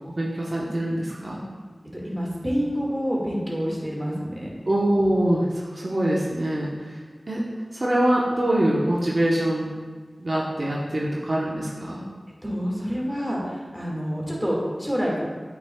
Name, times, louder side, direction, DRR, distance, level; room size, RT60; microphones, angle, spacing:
voice 1, 0.2-1.4 4.7-5.5 5.7-7.0 7.3-7.4 7.8-9.7 10.2-12.0, right 1 dB, 55° right, -6 dB, 1.0 m, -24 dB
voice 2, 1.9-4.5 12.4-15.2, equal, 5° right, -4 dB, 2.0 m, -27 dB
8.1 x 5.9 x 2.3 m, 1.4 s
wide cardioid pair, 45°, 0 cm